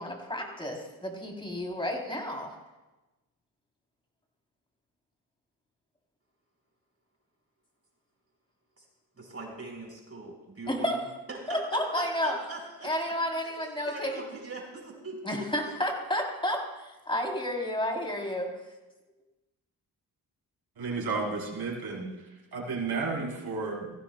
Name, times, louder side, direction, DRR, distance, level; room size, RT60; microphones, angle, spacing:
voice 1, 0.0-2.6 10.7-11.0 11.5-12.3 12.8-14.1 15.2-18.5, left 1 dB, 15° left, 1 dB, 3.2 m, -31 dB
voice 2, 9.1-11.0 11.3-13.1 13.4-13.6 13.8-15.5, right 2 dB, 35° right, 0 dB, 4.4 m, -41 dB
voice 3, 20.8-22.1 22.5-23.9, right 4 dB, 70° right, -2 dB, 3.7 m, -32 dB
18.0 x 15.0 x 2.2 m, 1.1 s
cardioid pair, 60°, 40 cm